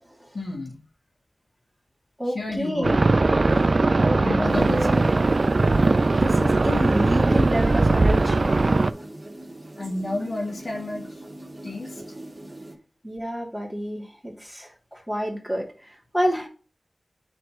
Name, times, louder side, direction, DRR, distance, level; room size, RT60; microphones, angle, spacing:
voice 1, 0.3-0.8 2.3-3.0 4.2-5.0 5.8-5.9 9.8-11.2 11.6-12.0, left 2 dB, 60° left, -1 dB, 1.8 m, -31 dB
voice 2, 2.2-3.0 4.0-4.2 4.5-5.1 6.1-8.5 13.0-16.5, equal, 5° right, -3 dB, 2.7 m, -28 dB
sound 1, 2.8-8.9, right 3 dB, 60° right, 0.3 m, -20 dB
sound 2, 4.5-12.8, right 1 dB, 40° right, 2.3 m, -41 dB
9.1 x 3.4 x 3.1 m, 0.37 s
wide cardioid pair, 65°, 0 cm